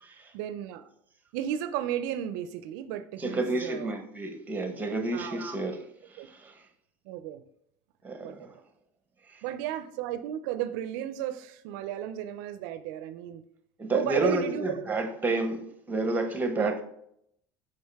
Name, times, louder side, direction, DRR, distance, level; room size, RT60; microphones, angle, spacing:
voice 1, 0.3-0.9 1.3-4.0 5.1-5.4 6.2-6.3 7.1-7.4 8.2-8.6 9.4-13.4 13.9-14.8 16.6-16.7, right 11 dB, 85° right, 0.4 m, -34 dB
voice 2, 3.2-6.6 8.0-8.6 9.3-9.4 13.8-16.8, right 2 dB, 15° right, 1.1 m, -30 dB
6.4 x 4.9 x 3.5 m
supercardioid pair, 105°, 10 cm